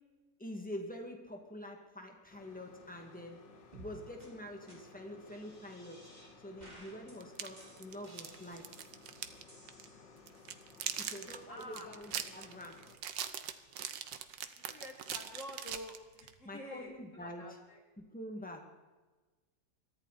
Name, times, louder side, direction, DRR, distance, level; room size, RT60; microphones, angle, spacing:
voice 1, 0.4-3.5 3.7-6.0 6.4-8.9 11.0-12.8 16.4-17.6 18.0-18.7, left 1 dB, 5° left, 2 dB, 2.3 m, -46 dB
sound 1, 2.3-13.0, left 4 dB, 75° left, 2.3 m, -58 dB
sound 2, 3.7-3.9 4.2-4.3 4.7-4.8 5.2-6.3 6.6-7.1 7.6-9.0 9.5-10.4, right 1 dB, 20° right, 4.4 m, -57 dB
Candy Bar Wrapper, 7.2-9.4 9.7-9.9 10.3-16.3, right 9 dB, 80° right, 1.7 m, -41 dB
voice 2, 11.5-11.9 14.5-17.8, left 1 dB, 45° left, 3 dB, 1.8 m, -48 dB
22.5 x 14.5 x 4.3 m, 1.2 s
omnidirectional pair, 2.0 m